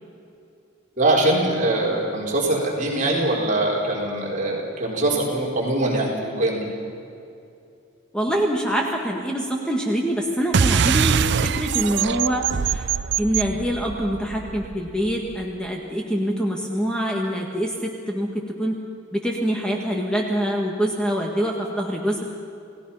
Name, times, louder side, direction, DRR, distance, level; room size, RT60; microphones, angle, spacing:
voice 1, 1.0-6.7, right 1 dB, 40° right, -3 dB, 4.4 m, -22 dB
voice 2, 8.1-12.9 13.2-18.8 19.1-22.2, equal, 5° left, 0 dB, 1.8 m, -25 dB
sound 1, 10.5-15.4, right 6 dB, 65° right, 0.5 m, -23 dB
29.5 x 18.0 x 5.7 m, 2.6 s
head